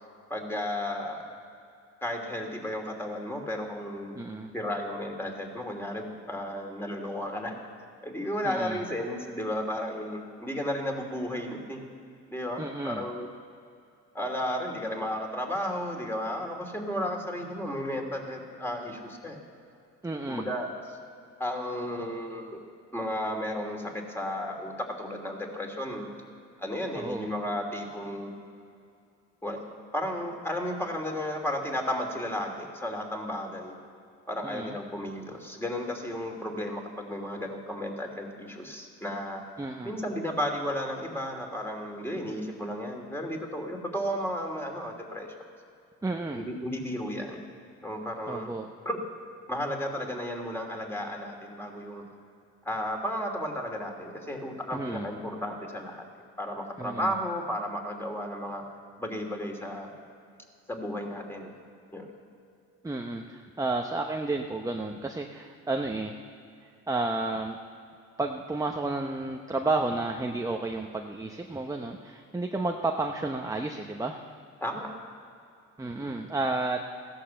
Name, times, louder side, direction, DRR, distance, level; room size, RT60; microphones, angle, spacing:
voice 1, 0.3-1.2 2.0-4.1 4.5-7.5 8.0-11.8 12.3-13.3 14.1-19.4 20.3-20.7 21.4-22.6 22.9-26.1 26.6-28.4 29.4-29.6 29.9-33.7 34.3-39.4 39.8-45.3 46.3-47.4 47.8-48.5 48.8-49.0 49.5-52.0 52.6-56.0 56.4-58.6 59.0-59.9 60.7-61.5 61.9-62.1 74.6-74.9 75.8-76.1, equal, 10° left, 1 dB, 2.9 m, -33 dB
voice 2, 4.1-4.5 8.4-8.8 12.6-13.0 20.0-20.5 26.9-27.3 34.4-34.8 39.6-40.0 46.0-46.5 48.3-48.7 54.7-55.1 56.8-57.2 62.8-66.2 66.9-67.6 68.2-74.2 75.8-76.8, right 2 dB, 10° right, 3 dB, 0.9 m, -31 dB
16.0 x 11.5 x 7.6 m, 2.5 s
cardioid pair, 90°, 30 cm